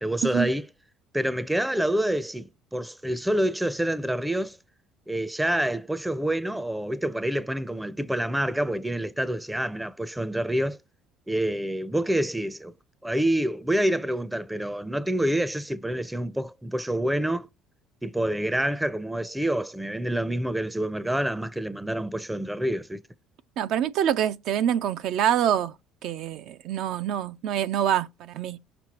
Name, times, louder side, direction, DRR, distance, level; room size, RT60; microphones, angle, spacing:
voice 1, 0.0-0.7 1.1-4.6 5.1-10.8 11.3-12.7 13.0-17.5 18.0-23.0, right 1 dB, 5° right, 0.5 m, -27 dB
voice 2, 23.6-25.7 26.0-28.6, right 10 dB, 65° right, 0.4 m, -25 dB
17.5 x 6.0 x 2.9 m
supercardioid pair, 90°, 0 cm